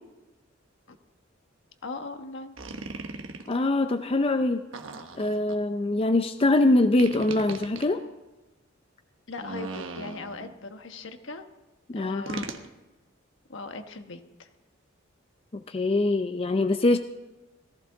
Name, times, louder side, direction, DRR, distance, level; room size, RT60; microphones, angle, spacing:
voice 1, 1.8-2.5 9.3-11.4 11.9-12.7 13.5-14.5, left 3 dB, 70° left, 6 dB, 1.2 m, -39 dB
sound 1, 2.6-3.6 4.7-5.6 7.0-7.9 9.3-10.6 12.3-12.7, right 3 dB, 80° right, 1.2 m, -38 dB
voice 2, 3.5-4.6 5.2-8.0 11.9-12.4 15.5-17.0, left 2 dB, 30° left, 8 dB, 0.5 m, -23 dB
17.5 x 14.5 x 3.9 m, 1.1 s
head